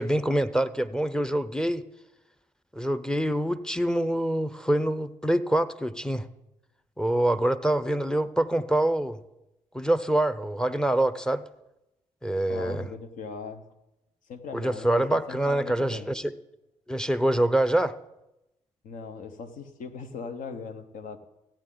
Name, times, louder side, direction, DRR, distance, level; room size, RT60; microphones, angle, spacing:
voice 1, 0.0-1.8 2.7-6.3 7.0-9.2 9.7-11.4 12.2-12.9 14.5-16.3 16.9-17.9, right 1 dB, 5° left, 0.6 m, -25 dB
voice 2, 12.5-13.6 14.3-16.1 18.8-21.2, left 5 dB, 75° left, 0.9 m, -39 dB
15.0 x 8.8 x 3.9 m
supercardioid pair, 55°, 14 cm